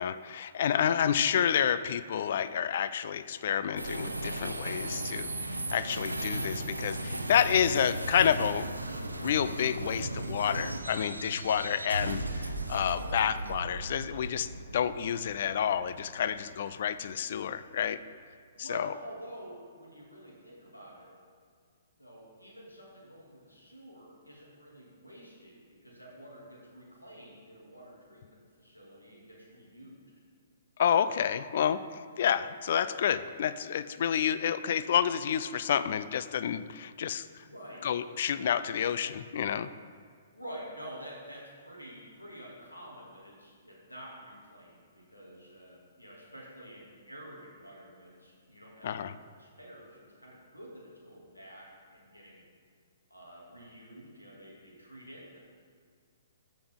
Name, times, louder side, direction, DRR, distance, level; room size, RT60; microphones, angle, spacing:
voice 1, 0.0-5.3 5.7-8.7 9.1-14.5 14.7-18.0 18.6-18.8 30.8-37.3 37.8-39.7 48.8-49.1, left 8 dB, 50° left, 14 dB, 0.3 m, -29 dB
sound 1, 3.8-17.1, right 1 dB, 85° right, 0.6 m, -37 dB
voice 2, 12.8-13.3 18.5-21.1 22.0-30.0 37.4-37.9 40.3-52.4 53.1-55.4, equal, 90° left, -3 dB, 2.5 m, -48 dB
14.0 x 5.2 x 3.7 m, 2.1 s
figure-of-eight pair, 120°, 0 cm